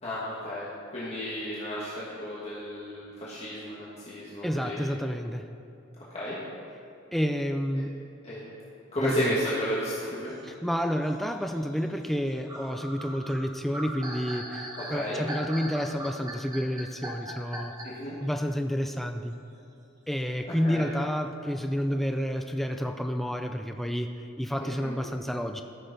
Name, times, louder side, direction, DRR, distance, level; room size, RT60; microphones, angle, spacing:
voice 1, 0.0-4.8 6.1-6.4 8.2-8.6 8.9-10.3 14.9-15.2 17.8-18.1 20.6-20.9 24.6-24.9, equal, 30° left, -8 dB, 1.4 m, -33 dB
voice 2, 4.4-5.5 7.1-8.0 9.0-9.3 10.4-17.7 18.2-19.3 20.1-25.6, equal, ahead, 5 dB, 0.3 m, -30 dB
sound 1, 10.3-18.1, right 1 dB, 20° right, 1.1 m, -40 dB
13.0 x 6.7 x 3.9 m, 2.8 s
head